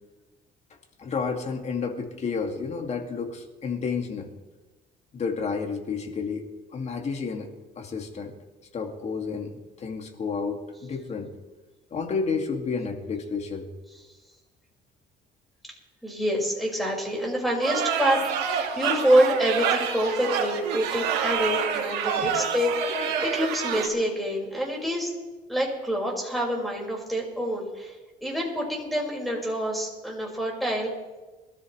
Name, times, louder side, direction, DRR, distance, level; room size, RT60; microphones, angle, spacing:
voice 1, 1.0-4.3 5.1-6.4 6.7-7.5 7.8-8.3 8.7-11.3 11.9-13.7 22.2-22.4, left 5 dB, 40° left, 3 dB, 2.3 m, -31 dB
voice 2, 16.0-25.1 25.5-28.0 28.2-30.9, equal, ahead, -2 dB, 5.3 m, -26 dB
sound 1, 17.6-23.9, right 7 dB, 85° right, 2.0 m, -27 dB
22.5 x 13.5 x 3.2 m, 1.2 s
cardioid pair, 110°, 17 cm